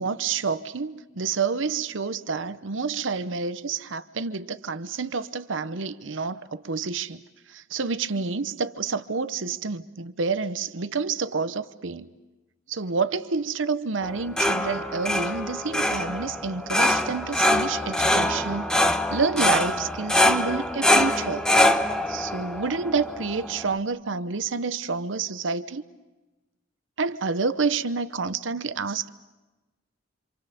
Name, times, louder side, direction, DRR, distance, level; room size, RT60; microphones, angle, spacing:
voice 1, 0.0-7.2 7.5-12.2 12.7-21.5 22.1-25.8 27.0-29.1, right 4 dB, 85° right, 0.9 m, -29 dB
sound 1, 14.0-23.7, left 1 dB, 5° left, 1.0 m, -24 dB
27.5 x 27.0 x 6.8 m
head